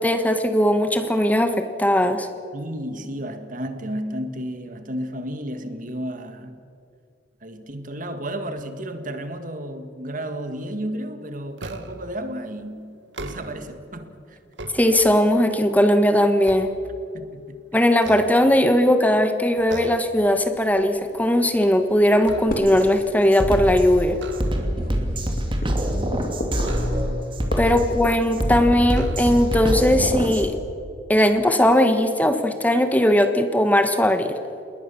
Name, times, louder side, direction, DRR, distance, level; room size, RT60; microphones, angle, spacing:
voice 1, 0.0-2.3 14.7-16.7 17.7-24.2 27.6-30.6 31.1-34.4, left 1 dB, 10° left, 1.3 m, -19 dB
voice 2, 2.5-6.6 7.4-14.4 14.6-14.8 17.1-17.6 24.8-25.7 27.7-28.0, right 1 dB, 45° right, 1.8 m, -33 dB
sound 1, 11.6-12.2 13.0-13.8 14.3-15.4 15.9-17.4 17.9-18.9 19.7-20.2 20.6-20.8 21.2-22.9 24.1-24.9 26.6-27.4 28.2-28.3 28.9-29.7, right 2 dB, 80° right, 1.9 m, -38 dB
sound 2, 19.6-28.8, left 1 dB, 55° left, 3.5 m, -37 dB
Drum kit, 22.7-22.8 23.3-30.5, equal, 30° right, 2.8 m, -25 dB
28.0 x 21.0 x 7.1 m
head